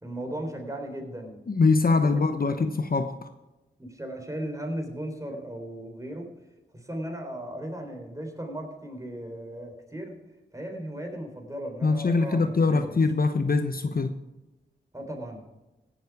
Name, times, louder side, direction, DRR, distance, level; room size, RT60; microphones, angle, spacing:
voice 1, 0.0-1.4 2.0-2.6 3.8-6.3 6.7-10.2 10.5-13.0 14.9-15.5, right 1 dB, 15° right, 3.7 m, -36 dB
voice 2, 1.5-3.1 11.8-14.2, left 3 dB, 50° left, 0.9 m, -23 dB
17.0 x 7.1 x 4.8 m
cardioid pair, 40°, 20 cm